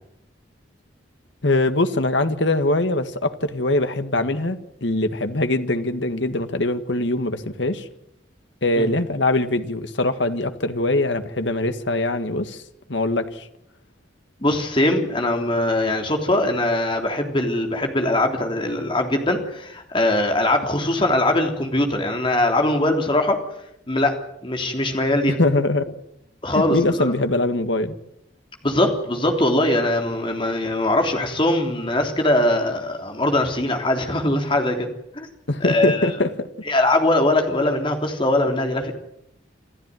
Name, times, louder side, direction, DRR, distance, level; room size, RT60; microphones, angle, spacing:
voice 1, 1.4-7.9 8.6-12.6 12.9-13.5 25.4-25.8 26.5-28.0 35.5-36.5, left 2 dB, 75° left, 9 dB, 1.8 m, -22 dB
voice 2, 14.4-23.4 23.9-24.2 24.4-25.4 26.4-27.1 28.6-34.9 35.1-35.3 35.6-36.1 36.7-39.0, left 1 dB, 25° left, 3 dB, 3.5 m, -21 dB
27.5 x 14.0 x 9.3 m, 0.80 s
head